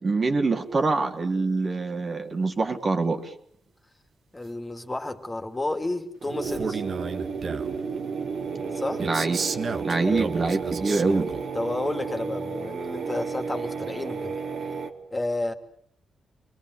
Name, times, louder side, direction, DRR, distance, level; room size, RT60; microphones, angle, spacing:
voice 1, 0.0-3.3 9.0-9.4 9.8-11.3, right 3 dB, 40° right, 3.0 m, -25 dB
voice 2, 4.3-6.8 8.7-9.1 10.0-10.3 11.5-14.3 15.1-15.5, left 2 dB, 20° left, 3.0 m, -31 dB
sound 1, 6.2-14.9, right 5 dB, 70° right, 3.4 m, -32 dB
Male speech man speaking, 6.4-7.8 9.0-11.4, right 5 dB, 55° right, 1.7 m, -32 dB
28.0 x 22.0 x 8.3 m
cardioid pair, 90°, 0 cm